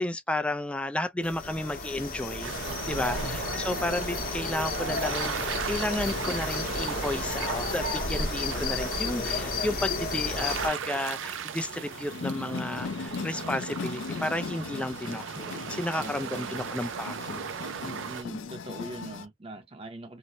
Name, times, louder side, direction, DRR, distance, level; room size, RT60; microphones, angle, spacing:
voice 1, 0.0-2.5 2.9-17.5, left 1 dB, 5° left, 0.3 m, -32 dB
sound 1, 1.2-10.7, left 3 dB, 50° left, 0.8 m, -32 dB
sound 2, 2.4-19.3, left 5 dB, 85° left, 0.4 m, -41 dB
sound 3, 2.4-18.2, right 8 dB, 85° right, 0.4 m, -37 dB
voice 2, 2.9-3.4 15.9-16.6 17.8-20.2, right 2 dB, 30° right, 0.7 m, -42 dB
2.6 x 2.0 x 2.9 m
head